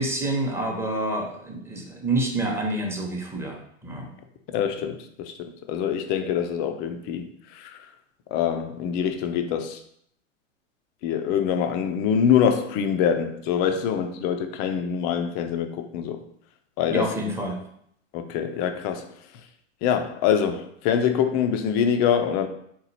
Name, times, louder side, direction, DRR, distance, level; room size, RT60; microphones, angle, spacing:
voice 1, 0.0-4.1 16.9-17.6, right 2 dB, 5° right, 0.7 m, -28 dB
voice 2, 4.5-7.9 8.3-9.8 11.0-16.2 16.8-17.1 18.1-19.1 19.8-22.5, left 8 dB, 25° left, 0.4 m, -24 dB
3.9 x 2.9 x 4.0 m
figure-of-eight pair, 95°, 38 cm